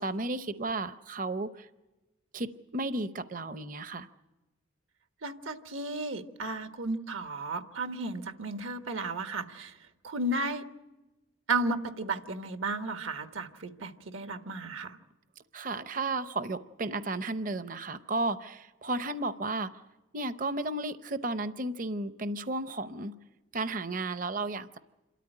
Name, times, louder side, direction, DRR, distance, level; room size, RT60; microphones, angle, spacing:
voice 1, 0.0-1.7 2.3-4.1 15.5-19.7 20.1-23.1 23.5-24.8, right 2 dB, 40° right, 12 dB, 0.7 m, -33 dB
voice 2, 5.2-9.8 10.0-10.6 11.5-15.0, right 2 dB, 80° right, 8 dB, 1.3 m, -34 dB
27.5 x 13.5 x 9.9 m, 1.1 s
head